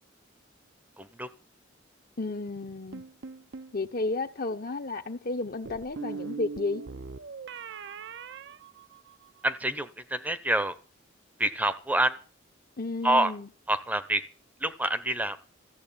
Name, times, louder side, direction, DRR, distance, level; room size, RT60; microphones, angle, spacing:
voice 1, 1.0-1.3 9.4-10.7 11.4-12.2 13.0-13.3 13.7-14.2 14.6-15.4, right 1 dB, 10° right, 0.7 m, -27 dB
voice 2, 2.2-3.0 3.7-6.8 12.8-13.5, left 3 dB, 50° left, 1.0 m, -32 dB
sound 1, 2.9-3.8 5.7-9.4, right 5 dB, 60° right, 0.6 m, -41 dB
14.0 x 7.6 x 8.8 m
head